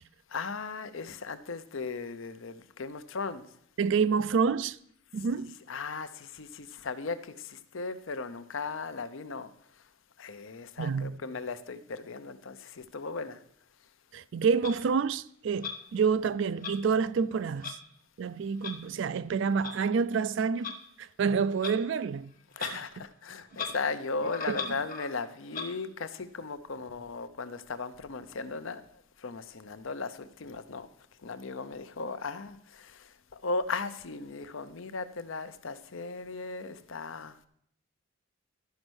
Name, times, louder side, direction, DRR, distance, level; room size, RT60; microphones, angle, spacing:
voice 1, 0.3-3.5 5.3-9.5 10.2-13.4 22.6-30.9 31.2-37.4, left 4 dB, 65° left, 0.6 m, -37 dB
voice 2, 3.8-4.8 5.1-5.5 10.8-11.2 14.1-17.8 18.2-20.7 21.0-22.3 22.6-22.7 24.5-24.6, right 5 dB, 60° right, 0.3 m, -28 dB
Clock, 14.6-14.7 15.6-15.8 16.6-16.7 17.6-17.8 18.6-18.7 19.6-19.7 20.6-20.8 21.6-21.8 22.5-22.7 23.0-23.1 23.5-23.7 24.2-25.1 25.5-25.7, left 5 dB, 40° left, 1.1 m, -37 dB
11.5 x 5.3 x 6.2 m
head